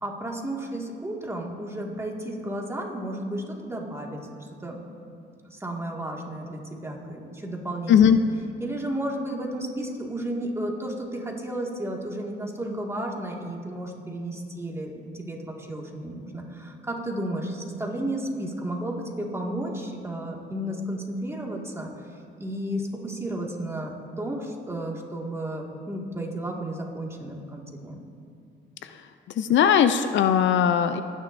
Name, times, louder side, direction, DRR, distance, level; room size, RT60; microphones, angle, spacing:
voice 1, 0.0-4.8 5.4-8.2 8.6-28.0, right 1 dB, 15° right, -1 dB, 1.9 m, -33 dB
voice 2, 29.4-31.0, left 8 dB, 70° left, 10 dB, 0.5 m, -19 dB
25.0 x 9.9 x 2.6 m, 2.4 s
cardioid pair, 90°, 20 cm